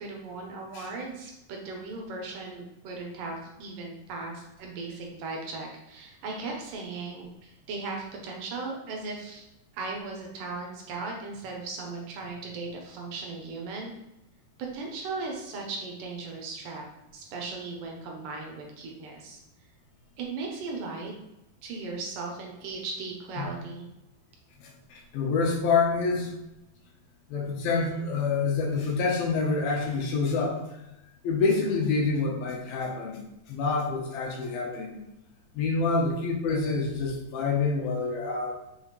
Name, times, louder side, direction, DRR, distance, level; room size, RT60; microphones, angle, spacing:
voice 1, 0.0-9.5 9.7-13.9 14.7-16.8 17.1-19.4 20.2-21.1 21.6-23.9, right 3 dB, 70° right, 1 dB, 2.6 m, -37 dB
voice 2, 24.6-26.3 27.3-30.6 31.2-33.2 33.5-35.0 35.5-38.6, left 4 dB, 80° left, 0 dB, 3.0 m, -27 dB
6.3 x 6.2 x 3.2 m, 0.90 s
omnidirectional pair, 4.2 m